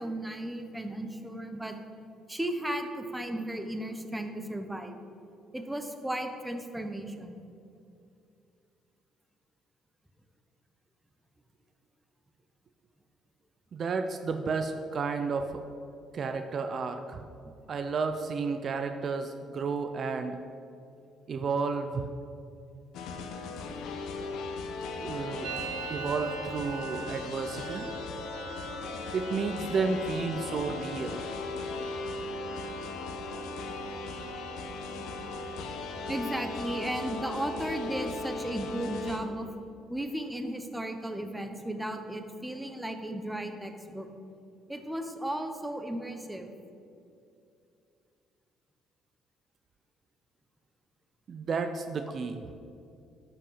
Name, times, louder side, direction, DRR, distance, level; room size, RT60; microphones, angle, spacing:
voice 1, 0.0-1.8 2.3-5.0 5.5-7.4 17.4-17.5 36.1-39.5 39.9-44.1 44.7-46.5, right 1 dB, 5° right, 6 dB, 1.0 m, -35 dB
voice 2, 13.7-15.6 16.1-17.2 17.7-20.4 21.3-22.1 25.0-25.5 25.9-27.9 29.1-31.2 51.3-52.5, right 4 dB, 45° right, 7 dB, 0.6 m, -32 dB
sound 1, 22.9-39.2, left 3 dB, 80° left, 0.9 m, -38 dB
Musical instrument, 25.4-33.1 33.3-33.9 34.2-34.8 35.0-37.1, right 8 dB, 80° right, 0.8 m, -44 dB
12.0 x 5.6 x 5.6 m, 2.5 s
cardioid pair, 95°, 0 cm